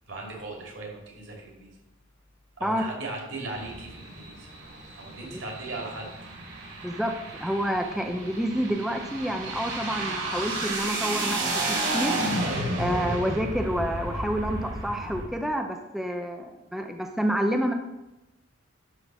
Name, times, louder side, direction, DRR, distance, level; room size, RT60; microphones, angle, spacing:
voice 1, 0.1-1.8 2.6-4.5 4.9-6.1, right 2 dB, 65° right, -1 dB, 2.7 m, -38 dB
sound 1, 3.5-15.2, right 2 dB, 85° right, 4.0 m, -32 dB
voice 2, 6.8-12.1 12.8-17.7, equal, ahead, 3 dB, 0.7 m, -29 dB
12.0 x 4.0 x 6.2 m, 0.94 s
head